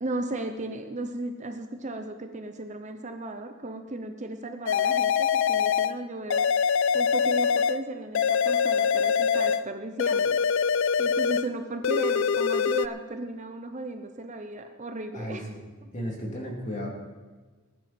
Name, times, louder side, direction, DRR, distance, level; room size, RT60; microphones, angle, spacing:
voice 1, 0.0-6.5 6.9-10.4 11.0-15.5 15.8-15.9, right 2 dB, 35° right, 6 dB, 0.9 m, -35 dB
sound 1, 4.7-6.0 6.3-7.8 8.1-9.7 10.0-11.5 11.8-12.9, left 6 dB, 60° left, 0.4 m, -24 dB
voice 2, 15.9-16.9, equal, 35° left, -1 dB, 3.1 m, -33 dB
19.5 x 10.5 x 4.5 m, 1.4 s
head